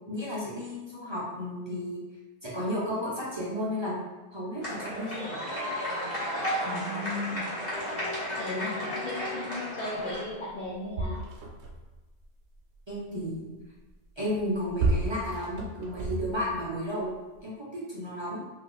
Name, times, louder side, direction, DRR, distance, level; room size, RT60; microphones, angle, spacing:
voice 1, 0.1-2.0 2.4-4.0 4.3-5.4 12.9-13.5 14.2-17.1 17.4-18.4, equal, 30° right, -8 dB, 0.6 m, -33 dB
sound 1, 4.6-10.2, equal, 40° left, 1.2 m, -33 dB
voice 2, 6.6-7.4 8.4-11.2, left 2 dB, 60° left, -3 dB, 0.6 m, -36 dB
sound 2, 10.3-10.4 10.6-12.0 14.3-16.7 17.4-17.5, right 2 dB, 80° right, 0.9 m, -31 dB
2.5 x 2.3 x 3.8 m, 1.2 s
omnidirectional pair, 1.1 m